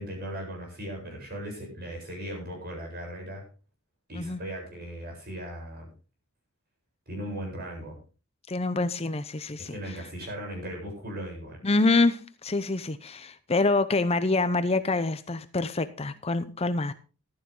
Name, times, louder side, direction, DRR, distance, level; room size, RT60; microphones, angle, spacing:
voice 1, 0.0-3.4 4.1-5.9 7.1-8.0 9.6-11.6, equal, 45° right, 1 dB, 8.0 m, -38 dB
voice 2, 8.5-9.7 11.6-16.9, left 3 dB, 30° left, 12 dB, 0.7 m, -26 dB
14.5 x 12.0 x 3.8 m, 0.34 s
head